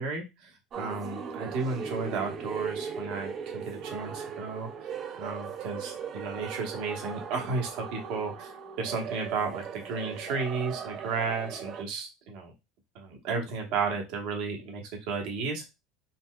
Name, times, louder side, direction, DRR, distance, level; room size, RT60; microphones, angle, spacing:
voice 1, 0.0-4.9 5.2-12.5 12.9-15.7, right 4 dB, 70° right, 2 dB, 1.1 m, -33 dB
sound 1, 0.7-11.8, right 6 dB, 40° right, 0.4 m, -38 dB
4.0 x 2.2 x 2.2 m, 0.23 s
supercardioid pair, 120°, 0 cm